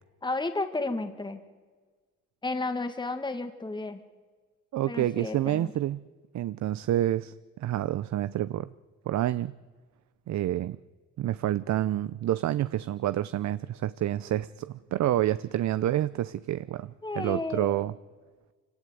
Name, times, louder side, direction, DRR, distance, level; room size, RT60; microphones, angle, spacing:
voice 1, 0.2-1.4 2.4-4.0 4.9-5.7 17.0-17.8, left 2 dB, 15° left, 2.0 m, -32 dB
voice 2, 4.7-6.0 6.3-8.7 9.1-9.5 10.3-10.8 11.2-17.9, right 13 dB, 65° right, 0.7 m, -28 dB
25.5 x 17.5 x 9.4 m
cardioid pair, 90°, 30 cm